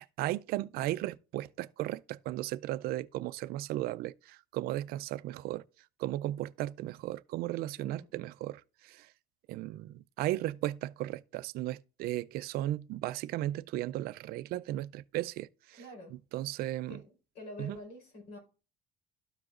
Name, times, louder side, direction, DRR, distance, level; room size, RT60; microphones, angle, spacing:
voice 1, 0.0-5.6 6.0-9.1 9.5-15.5 16.3-17.0 17.6-17.8, right 15 dB, 65° right, 0.4 m, -35 dB
voice 2, 15.7-16.1 16.9-18.4, left 1 dB, 80° left, 4.5 m, -47 dB
13.0 x 4.9 x 2.5 m
cardioid pair, 155°, 17 cm